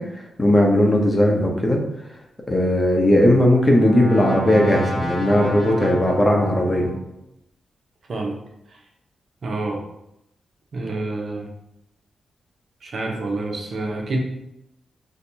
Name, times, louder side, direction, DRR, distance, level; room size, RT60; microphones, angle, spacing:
voice 1, 0.0-1.8 2.5-6.9, left 1 dB, 25° left, 1 dB, 0.8 m, -18 dB
Brass instrument, 3.1-7.1, equal, 40° right, 1.1 m, -31 dB
voice 2, 8.0-8.4 8.7-8.8 9.4-9.8 10.7-11.5 12.8-14.2, right 2 dB, 60° right, 1 dB, 0.7 m, -28 dB
4.4 x 2.2 x 2.7 m, 0.81 s
cardioid pair, 65°, 0 cm